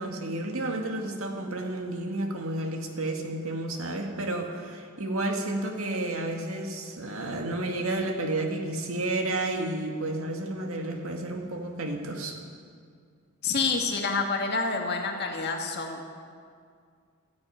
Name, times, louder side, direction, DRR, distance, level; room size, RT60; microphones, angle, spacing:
voice 1, 0.0-12.4, right 2 dB, 85° right, 3 dB, 2.0 m, -31 dB
voice 2, 13.4-16.2, left 4 dB, 50° left, 2 dB, 1.8 m, -28 dB
14.0 x 10.5 x 9.2 m, 2.2 s
head